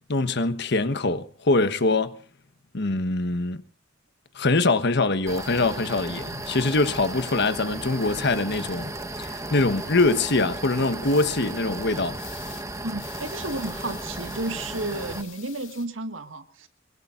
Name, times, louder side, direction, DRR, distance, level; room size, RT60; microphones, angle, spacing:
voice 1, 0.1-2.2 2.7-3.6 4.3-8.9 9.2-12.2, left 2 dB, 60° left, 1.3 m, -23 dB
sound 1, 5.3-15.2, right 2 dB, 15° right, 1.3 m, -35 dB
sound 2, 11.0-11.3 12.1-12.7 13.0-15.9, left 11 dB, 75° left, 2.2 m, -46 dB
voice 2, 12.8-16.7, right 2 dB, 80° right, 2.0 m, -32 dB
23.5 x 23.0 x 2.6 m
head